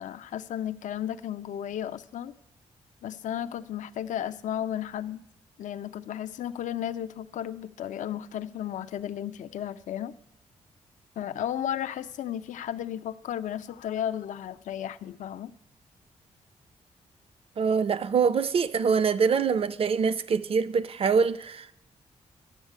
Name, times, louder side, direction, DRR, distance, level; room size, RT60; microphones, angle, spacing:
voice 1, 0.0-2.3 3.0-5.2 5.6-10.1 11.2-15.5, left 10 dB, 85° left, 0.5 m, -34 dB
voice 2, 17.6-21.7, right 6 dB, 50° right, 0.6 m, -24 dB
11.0 x 7.3 x 8.2 m
cardioid pair, 105°, 13 cm